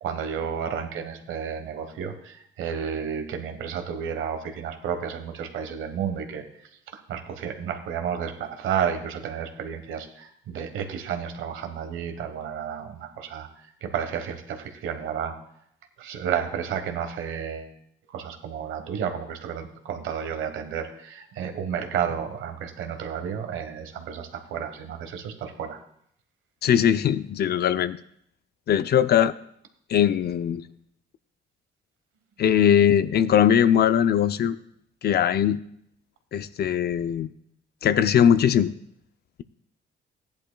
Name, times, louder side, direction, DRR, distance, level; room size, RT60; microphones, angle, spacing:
voice 1, 0.0-6.4 7.1-13.5 13.8-15.4 16.0-17.7 18.1-25.8, right 8 dB, 85° right, 6 dB, 1.2 m, -31 dB
voice 2, 26.6-28.0 28.7-29.3 29.9-30.6 32.4-34.6 35.0-35.6 36.3-37.3 37.8-38.7, left 9 dB, 55° left, 14 dB, 0.5 m, -20 dB
15.0 x 10.5 x 2.3 m, 0.71 s
cardioid pair, 90°, 20 cm